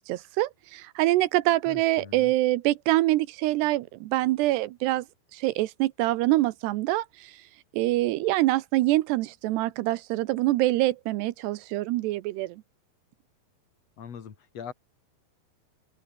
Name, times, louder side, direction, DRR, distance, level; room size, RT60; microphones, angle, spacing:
voice 1, 0.1-5.1 5.3-7.3 7.7-12.6, right 17 dB, 75° right, 2.7 m, -25 dB
voice 2, 1.7-2.3 14.0-14.7, left 7 dB, 40° left, 2.9 m, -42 dB
open air
omnidirectional pair, 5.2 m